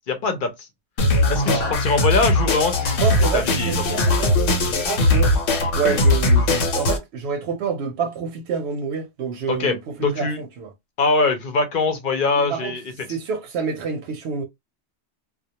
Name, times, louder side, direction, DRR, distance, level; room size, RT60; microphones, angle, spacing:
voice 1, 0.1-0.5 1.3-3.0 3.3-3.8 9.5-10.4 11.0-12.8, left 3 dB, 50° left, 0.7 m, -22 dB
sound 1, 1.0-7.0, left 2 dB, 85° left, 1.0 m, -19 dB
voice 2, 1.5-1.9 3.0-4.3 4.6-5.3 5.8-10.7 12.4-12.8 13.1-14.4, right 6 dB, 65° right, 0.8 m, -28 dB
2.2 x 2.1 x 2.8 m
omnidirectional pair, 1.2 m